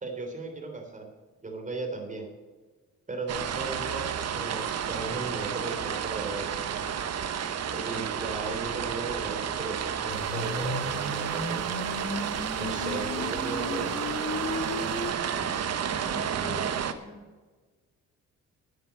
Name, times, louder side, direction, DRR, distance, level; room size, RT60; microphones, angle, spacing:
voice 1, 0.0-1.1 1.4-2.3 3.1-6.9 7.7-11.7 12.6-14.0, right 3 dB, 25° right, 3 dB, 3.4 m, -36 dB
sound 1, 3.3-16.9, right 8 dB, 55° right, 1.0 m, -31 dB
sound 2, 10.1-15.1, left 2 dB, 40° left, 2.3 m, -35 dB
voice 2, 16.0-17.3, left 2 dB, 10° left, -5 dB, 4.5 m, -43 dB
10.5 x 8.6 x 8.0 m, 1.3 s
cardioid pair, 90°, 30 cm